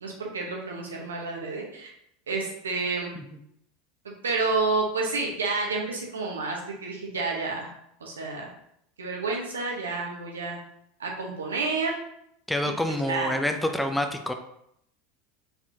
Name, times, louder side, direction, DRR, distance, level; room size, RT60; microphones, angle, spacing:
voice 1, 0.0-1.9 2.3-3.1 4.2-7.7 8.0-8.5 9.0-10.6 11.0-11.9 12.6-13.3, right 3 dB, 90° right, -1 dB, 1.1 m, -29 dB
voice 2, 12.5-14.3, left 1 dB, 5° left, 6 dB, 0.5 m, -27 dB
4.3 x 4.2 x 2.8 m, 0.74 s
hypercardioid pair, 85°, 0 cm